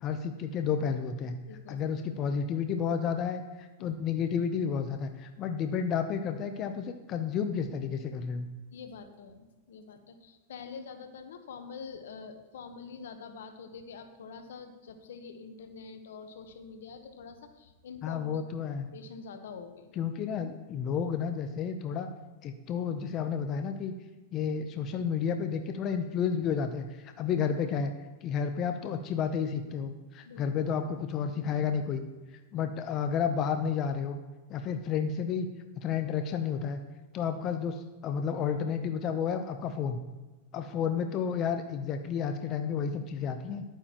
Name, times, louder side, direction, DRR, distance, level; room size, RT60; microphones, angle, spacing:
voice 1, 0.0-1.3 1.7-8.5 18.0-18.9 20.0-22.1 22.4-23.9 24.3-27.9 28.2-32.0 32.5-34.2 34.5-35.5 35.8-36.8 37.1-40.0 40.5-43.6, left 7 dB, 40° left, 7 dB, 0.7 m, -31 dB
voice 2, 1.5-1.8 3.8-3.9 8.7-18.4 18.9-20.1 30.2-30.4 32.5-32.7, left 5 dB, 75° left, 7 dB, 1.1 m, -46 dB
11.0 x 8.9 x 3.0 m, 1.2 s
hypercardioid pair, 115°, 0 cm